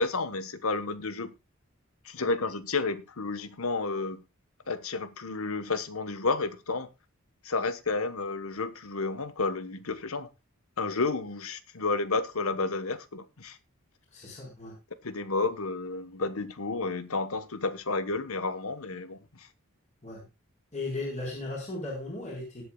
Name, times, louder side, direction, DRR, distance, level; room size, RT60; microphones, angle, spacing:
voice 1, 0.0-1.3 2.0-4.2 4.7-6.9 7.4-10.3 10.8-13.6 15.0-19.5, left 3 dB, 75° left, 1.3 m, -31 dB
voice 2, 14.1-14.7 20.0-20.2 20.7-22.6, left 2 dB, 35° left, 4.8 m, -36 dB
20.0 x 8.3 x 2.4 m
head